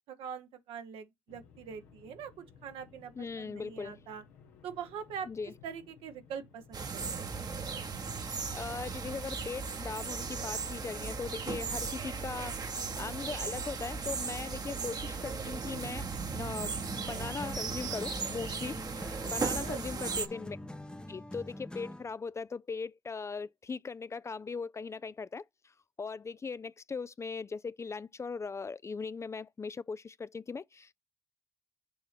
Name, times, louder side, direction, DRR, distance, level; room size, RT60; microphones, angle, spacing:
voice 1, 0.1-3.1 3.4-4.2 4.6-5.3 5.6-7.3 19.6-20.2, right 7 dB, 75° right, 1.1 m, -43 dB
sound 1, 1.3-21.2, left 6 dB, 90° left, 1.2 m, -59 dB
voice 2, 3.2-4.0 5.3-5.5 8.5-20.6 21.1-30.9, left 5 dB, 30° left, 0.4 m, -39 dB
sound 2, 6.7-20.3, right 5 dB, 45° right, 1.1 m, -37 dB
sound 3, 16.8-22.2, left 1 dB, 10° left, 0.7 m, -44 dB
7.0 x 2.8 x 5.8 m
hypercardioid pair, 50°, 10 cm